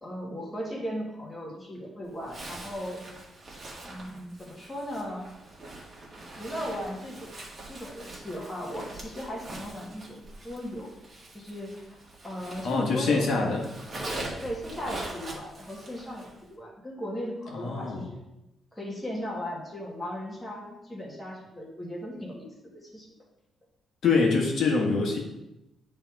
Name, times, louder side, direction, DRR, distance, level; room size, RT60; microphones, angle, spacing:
voice 1, 0.0-3.0 3.8-5.3 6.2-7.4 7.6-10.9 11.3-12.0 12.2-13.5 14.4-18.2 18.7-23.1, equal, 10° left, -3 dB, 1.8 m, -37 dB
Zipper (clothing), 2.2-13.2 13.4-16.4, right 2 dB, 30° right, 1.7 m, -42 dB
voice 2, 12.6-13.6 17.5-18.1 24.0-25.2, left 4 dB, 60° left, -1 dB, 1.4 m, -25 dB
9.2 x 3.5 x 4.7 m, 0.92 s
cardioid pair, 130°, 0 cm